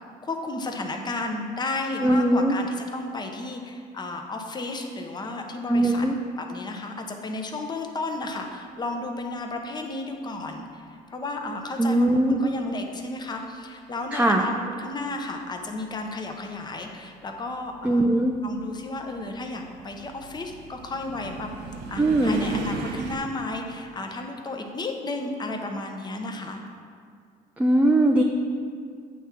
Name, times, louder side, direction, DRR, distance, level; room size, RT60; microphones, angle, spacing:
voice 1, 0.2-6.1 6.4-18.1 18.4-21.5 21.9-26.6, left 2 dB, 25° left, 3 dB, 0.8 m, -33 dB
voice 2, 2.0-2.5 5.7-6.2 11.8-12.5 14.1-14.4 17.8-18.3 22.0-22.4 27.6-28.2, right 1 dB, 10° right, 2 dB, 0.4 m, -20 dB
sound 1, 15.9-16.0 17.1-23.2, right 3 dB, 85° right, 0.8 m, -36 dB
8.3 x 3.5 x 5.9 m, 2.1 s
cardioid pair, 110°, 17 cm